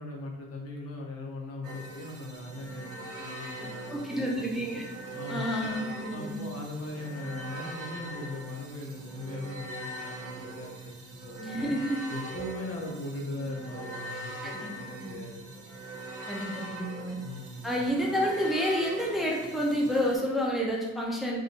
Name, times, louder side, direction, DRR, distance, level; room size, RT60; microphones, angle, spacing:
voice 1, 0.0-4.6 5.1-5.5 6.1-11.7 12.1-15.4 17.2-17.7, left 2 dB, 50° left, -1 dB, 1.0 m, -39 dB
sound 1, 1.6-20.2, right 1 dB, 50° right, 1.0 m, -41 dB
voice 2, 3.9-4.8 5.3-6.5 11.4-12.0 14.4-14.7 15.0-15.1 16.3-17.2 17.6-21.4, equal, ahead, -3 dB, 0.7 m, -29 dB
3.6 x 2.6 x 2.6 m, 1.2 s
supercardioid pair, 75°, 30 cm